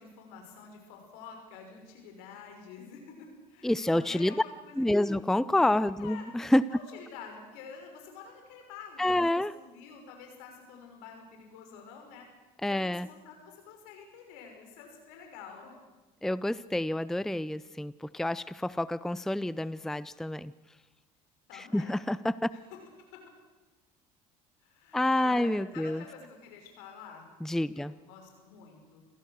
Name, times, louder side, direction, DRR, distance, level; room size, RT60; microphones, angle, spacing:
voice 1, 0.0-5.2 6.0-6.2 6.7-12.3 12.7-15.8 21.5-22.0 22.5-22.6 23.1-23.2 24.6-27.4 27.7-29.0, left 6 dB, 75° left, 3 dB, 5.8 m, -48 dB
voice 2, 3.6-4.3 4.8-6.6 9.0-9.5 12.6-13.1 16.2-20.5 21.5-22.5 24.9-26.0 27.4-27.9, left 1 dB, ahead, 18 dB, 0.6 m, -28 dB
27.5 x 16.5 x 6.5 m, 1.2 s
hypercardioid pair, 65°, 19 cm